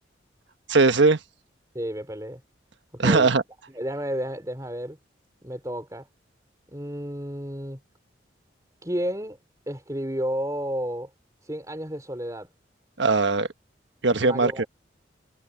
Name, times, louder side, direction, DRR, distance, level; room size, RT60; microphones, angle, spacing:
voice 1, 0.7-1.2 3.0-3.4 13.0-13.5 14.0-14.6, right 3 dB, 75° right, 1.4 m, -19 dB
voice 2, 1.7-2.4 2.9-3.3 3.7-5.0 5.4-6.1 6.7-7.8 8.8-9.4 9.7-11.1 11.4-12.5 14.2-14.7, equal, 20° right, 4.0 m, -31 dB
head